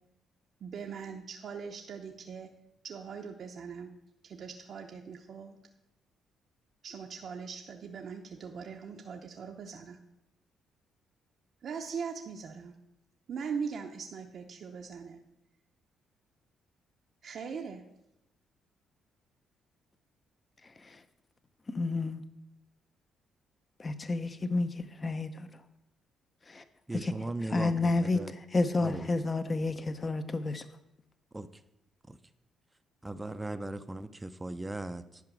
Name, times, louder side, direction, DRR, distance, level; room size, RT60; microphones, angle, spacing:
voice 1, 0.6-2.5 2.8-3.9 4.2-5.6 6.8-10.0 11.6-12.8 13.3-15.2 17.2-17.8, right 6 dB, 60° right, 1 dB, 0.7 m, -40 dB
voice 2, 21.7-22.2 23.8-25.5 26.5-26.6 26.9-27.1 27.5-30.6, left 3 dB, 30° left, 10 dB, 0.7 m, -30 dB
voice 3, 26.9-28.3 28.8-29.1 31.3-31.5 32.1-32.2 33.0-35.2, right 2 dB, 15° right, 11 dB, 0.5 m, -38 dB
10.5 x 4.9 x 6.2 m, 0.86 s
cardioid pair, 90°, 0 cm